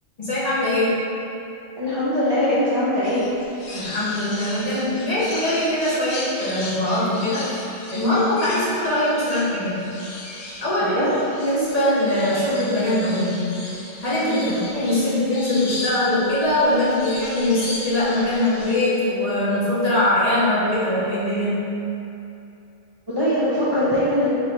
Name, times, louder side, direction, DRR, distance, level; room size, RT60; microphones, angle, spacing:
voice 1, 0.2-1.1 3.7-7.5 7.9-9.9 10.6-10.9 11.4-13.5 14.0-14.4 14.7-21.7, left 1 dB, 40° left, -10 dB, 0.8 m, -22 dB
voice 2, 1.8-3.3 10.8-11.1 14.2-14.6 23.1-24.3, left 1 dB, 30° right, -11 dB, 0.5 m, -22 dB
sound 1, 3.0-18.8, left 2 dB, 75° left, 1.0 m, -36 dB
3.0 x 2.7 x 4.4 m, 2.8 s
omnidirectional pair, 1.2 m